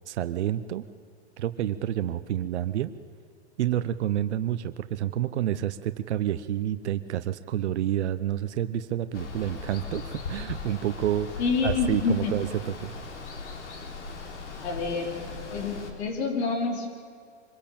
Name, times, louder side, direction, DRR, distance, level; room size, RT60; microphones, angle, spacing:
voice 1, 0.1-0.8 1.4-2.9 3.6-11.3 11.6-12.9, right 11 dB, 75° right, 11 dB, 1.0 m, -29 dB
Water, 9.1-15.9, left 4 dB, 85° left, 3.8 m, -38 dB
voice 2, 11.4-12.3 14.6-15.2 15.5-16.9, left 4 dB, 65° left, 3 dB, 4.8 m, -27 dB
25.5 x 16.0 x 8.7 m, 2.2 s
hypercardioid pair, 135°, 34 cm